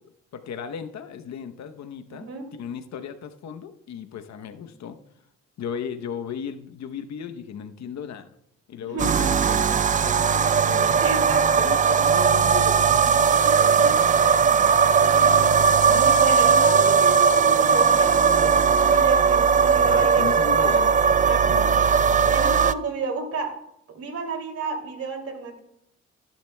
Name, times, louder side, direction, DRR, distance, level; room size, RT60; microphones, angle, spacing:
voice 1, 0.3-2.3 2.6-5.0 5.6-8.3 8.7-11.0 11.6-16.0 19.8-21.0 21.4-22.4, left 7 dB, 65° left, 8 dB, 0.9 m, -36 dB
voice 2, 2.1-2.5 8.8-9.5 10.9-11.9 15.8-20.8 21.2-21.7 22.3-23.5 23.9-25.6, right 3 dB, 55° right, 4 dB, 2.6 m, -31 dB
sound 1, 9.0-22.7, right 6 dB, 25° right, 0.3 m, -18 dB
15.0 x 10.5 x 2.2 m, 0.78 s
cardioid pair, 90°, 30 cm